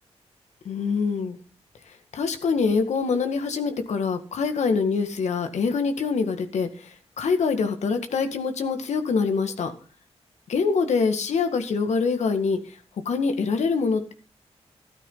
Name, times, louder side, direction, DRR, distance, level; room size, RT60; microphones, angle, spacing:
voice 1, 0.7-1.4 2.1-9.7 10.5-12.8 13.1-14.1, left 5 dB, 85° left, 7 dB, 2.0 m, -25 dB
13.5 x 13.0 x 4.0 m, 0.37 s
wide cardioid pair, 140°, 11 cm